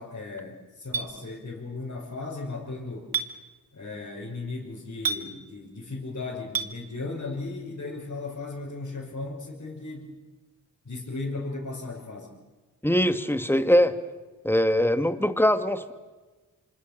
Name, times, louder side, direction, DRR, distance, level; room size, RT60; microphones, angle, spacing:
voice 1, 0.0-3.1 3.7-10.1 10.8-12.3, left 3 dB, 45° left, -5 dB, 5.9 m, -36 dB
Chink clink, 0.9-1.1 3.1-3.3 5.0-5.2 6.5-6.7, right 5 dB, 65° right, 2.1 m, -27 dB
voice 2, 12.8-13.9 14.4-15.9, equal, 5° left, 10 dB, 2.2 m, -22 dB
26.5 x 26.0 x 6.8 m, 1.3 s
supercardioid pair, 40°, 37 cm